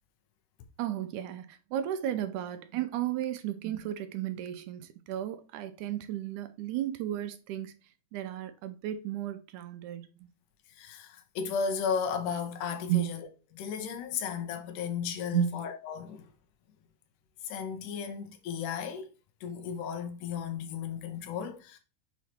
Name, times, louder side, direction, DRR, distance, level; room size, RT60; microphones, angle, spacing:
voice 1, 0.8-7.7 8.1-10.3 12.9-13.1 15.3-15.6, right 12 dB, 80° right, 2.0 m, -33 dB
voice 2, 10.7-13.2 13.5-16.3 17.4-19.1 19.4-21.8, left 6 dB, 80° left, 2.4 m, -34 dB
7.1 x 3.1 x 4.3 m
omnidirectional pair, 3.7 m